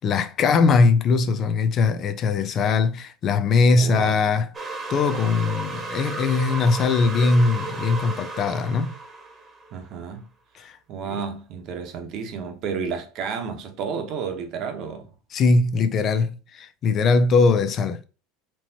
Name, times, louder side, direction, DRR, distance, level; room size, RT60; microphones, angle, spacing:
voice 1, 0.0-4.5 4.9-9.0 10.5-10.8 15.3-18.0, left 4 dB, 40° left, 0.4 m, -21 dB
voice 2, 3.7-4.2 9.7-10.3 10.9-15.1, right 6 dB, 50° right, 0.9 m, -31 dB
sound 1, 4.5-9.9, right 3 dB, 20° right, 1.1 m, -34 dB
4.4 x 3.0 x 2.8 m
supercardioid pair, 120°, 0 cm